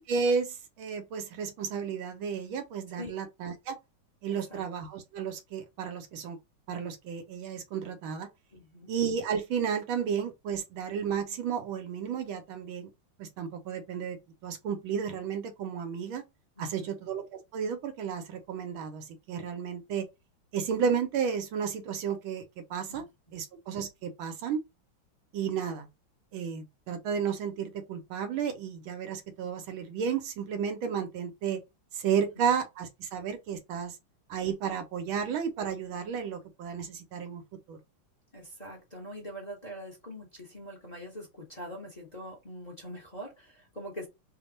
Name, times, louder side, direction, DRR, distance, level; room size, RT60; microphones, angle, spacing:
voice 1, 0.0-3.8 4.2-6.4 6.7-8.3 8.9-12.9 13.2-16.2 16.6-17.2 17.5-20.1 20.5-22.4 22.7-23.0 23.3-24.6 25.3-25.9 26.3-31.6 31.9-34.0 34.3-37.8, right 7 dB, 75° right, 1.5 m, -32 dB
voice 2, 4.3-4.6 8.5-8.9 16.6-17.0 22.9-23.4 32.4-32.5 38.3-44.1, equal, 25° left, 1.0 m, -44 dB
3.5 x 2.3 x 3.9 m
omnidirectional pair, 2.3 m